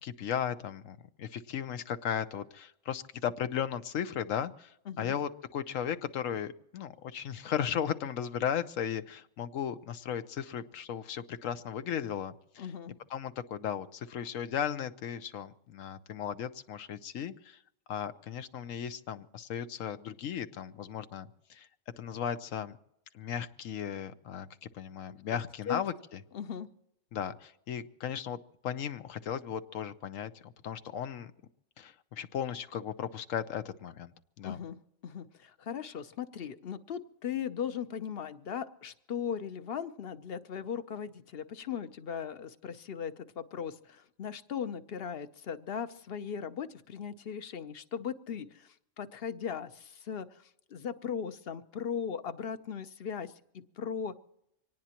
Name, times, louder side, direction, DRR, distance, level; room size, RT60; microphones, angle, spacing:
voice 1, 0.0-12.7 13.1-17.6 17.9-21.7 22.0-22.8 23.1-24.5 24.7-25.9 27.1-28.4 28.6-31.3 31.8-34.1 34.4-34.6, left 8 dB, 80° left, 11 dB, 1.1 m, -36 dB
voice 2, 12.6-12.9 25.7-25.8 26.3-26.7 34.4-34.8 35.0-54.2, left 7 dB, 55° left, 12 dB, 0.9 m, -38 dB
24.5 x 18.5 x 2.9 m, 0.80 s
omnidirectional pair, 1.3 m